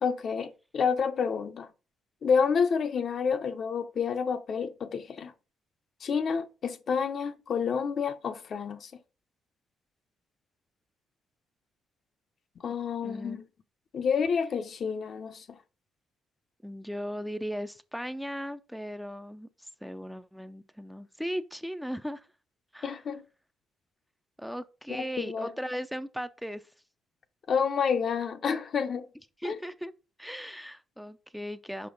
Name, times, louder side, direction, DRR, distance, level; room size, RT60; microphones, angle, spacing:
voice 1, 0.0-1.7 2.2-5.3 6.0-8.9 12.6-13.4 13.9-15.4 22.8-23.2 24.9-25.5 27.5-29.1 29.4-29.6, left 6 dB, 55° left, 0.6 m, -29 dB
voice 2, 13.0-13.4 16.6-22.3 22.7-23.0 24.4-26.6 29.4-29.9 30.2-31.9, equal, ahead, 0.5 m, -37 dB
5.5 x 5.1 x 3.9 m
cardioid pair, 90°, 0 cm